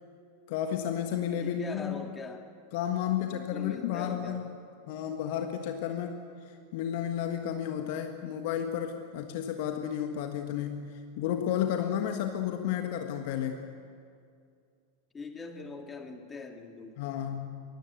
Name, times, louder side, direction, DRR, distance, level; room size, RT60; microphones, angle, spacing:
voice 1, 0.5-2.1 2.7-4.4 4.9-6.2 6.7-10.9 11.2-13.6 17.0-17.6, left 9 dB, 50° left, 6 dB, 1.5 m, -32 dB
voice 2, 1.4-2.4 3.2-4.5 15.1-17.0, left 4 dB, 15° left, 5 dB, 2.4 m, -42 dB
24.0 x 20.0 x 8.1 m, 2.3 s
figure-of-eight pair, 90°, 0 cm